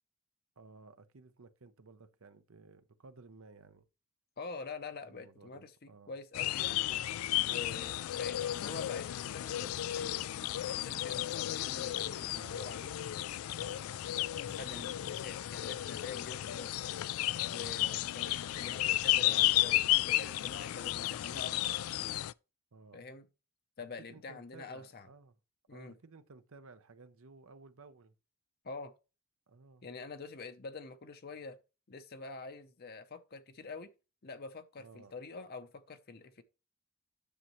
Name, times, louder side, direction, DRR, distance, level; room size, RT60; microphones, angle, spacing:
voice 1, 0.6-3.8 5.1-6.1 7.6-8.0 12.3-12.7 13.5-14.2 17.7-18.0 21.4-21.9 22.7-23.0 24.0-25.4 25.7-28.1 29.5-29.9 34.8-35.1, right 3 dB, 70° right, 0.8 m, -56 dB
voice 2, 4.4-7.0 7.5-10.2 10.6-12.9 14.5-16.7 17.5-21.7 22.9-23.3 23.8-25.1 25.7-25.9 28.6-28.9 29.8-31.6 31.9-33.9 34.2-36.4, left 4 dB, 45° left, 0.7 m, -46 dB
sound 1, 6.3-22.3, left 15 dB, 75° left, 0.3 m, -33 dB
sound 2, 13.6-19.5, right 5 dB, 50° right, 1.7 m, -64 dB
10.0 x 6.5 x 3.1 m
head